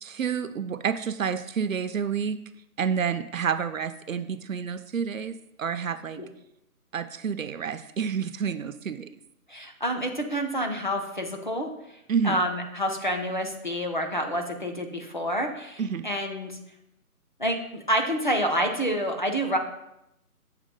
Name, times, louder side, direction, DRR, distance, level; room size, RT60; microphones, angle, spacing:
voice 1, 0.0-2.4 2.8-6.2 6.9-9.1 12.1-12.4 15.8-16.1, right 7 dB, 60° right, 11 dB, 0.5 m, -29 dB
voice 2, 9.5-11.7 12.2-16.5 17.4-19.6, equal, 35° left, 3 dB, 0.6 m, -28 dB
7.4 x 3.0 x 5.2 m, 0.82 s
figure-of-eight pair, 165°, 45 cm